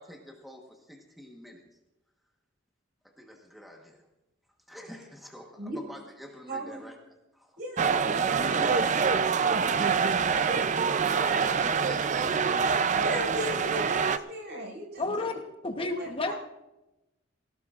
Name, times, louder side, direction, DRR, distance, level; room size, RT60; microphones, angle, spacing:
voice 1, 0.0-1.6 3.0-4.1 4.7-7.0 7.3-7.9 9.6-10.3 10.6-12.7, equal, ahead, 0 dB, 1.2 m, -47 dB
voice 2, 6.5-6.8 7.6-8.0 8.3-8.9 13.0-15.4 15.8-16.3, right 1 dB, 60° right, 0 dB, 5.3 m, -37 dB
sound 1, 7.8-14.2, right 6 dB, 40° right, 0.4 m, -25 dB
voice 3, 15.0-15.3 15.6-16.3, left 2 dB, 30° left, 5 dB, 0.9 m, -30 dB
19.0 x 17.5 x 2.5 m, 0.96 s
head